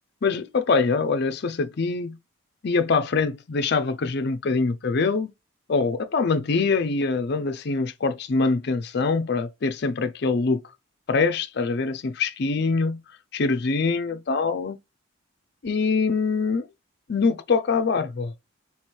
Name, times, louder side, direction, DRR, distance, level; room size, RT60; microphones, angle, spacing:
voice 1, 0.2-2.2 2.6-5.3 5.7-10.6 11.1-13.0 13.3-14.8 15.6-16.7 17.1-18.3, left 4 dB, 50° left, 0.4 m, -24 dB
3.4 x 3.1 x 4.3 m
head